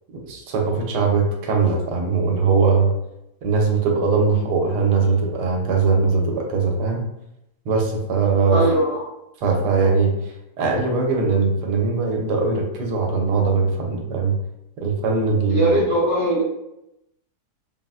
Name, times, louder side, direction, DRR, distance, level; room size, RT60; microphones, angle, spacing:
voice 1, 0.1-2.9 3.4-7.1 7.7-8.6 9.4-10.1 10.6-14.4 14.8-15.8, right 4 dB, 80° right, 1 dB, 1.2 m, -20 dB
voice 2, 8.5-9.0 15.5-16.4, right 1 dB, 15° right, -8 dB, 0.5 m, -20 dB
3.7 x 2.0 x 2.3 m, 0.86 s
omnidirectional pair, 1.8 m